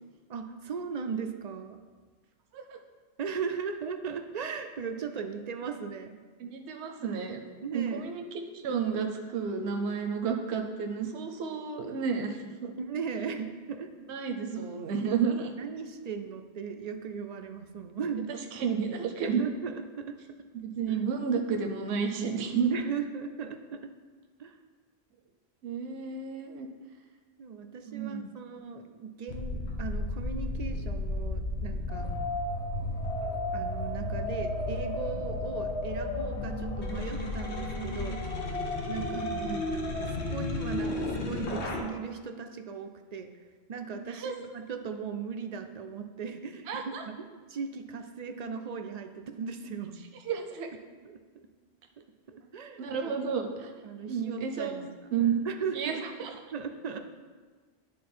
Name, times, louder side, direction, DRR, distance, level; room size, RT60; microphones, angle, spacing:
voice 1, 0.3-1.8 3.2-6.1 7.6-8.1 12.8-13.9 15.5-18.3 19.2-20.2 20.9-21.0 22.7-23.9 24.4-24.6 27.4-32.1 33.5-38.2 38.9-39.3 40.0-43.3 43.7-49.9 51.0-51.5 52.0-53.1 53.8-54.9 55.4-56.1 56.5-57.0, right 6 dB, 55° right, 6 dB, 0.4 m, -37 dB
voice 2, 6.4-7.4 7.7-12.7 14.1-15.5 18.3-19.4 20.5-22.7 25.6-26.7 27.9-28.3 39.1-39.6 44.2-44.3 46.7-47.0 50.3-50.7 52.8-53.7 54.1-54.8 55.1-55.4 55.7-56.3, right 6 dB, 80° right, 4 dB, 0.9 m, -31 dB
sound 1, 29.3-41.8, left 2 dB, 90° left, 1.3 m, -33 dB
10.5 x 3.9 x 4.3 m, 1.4 s
omnidirectional pair, 1.1 m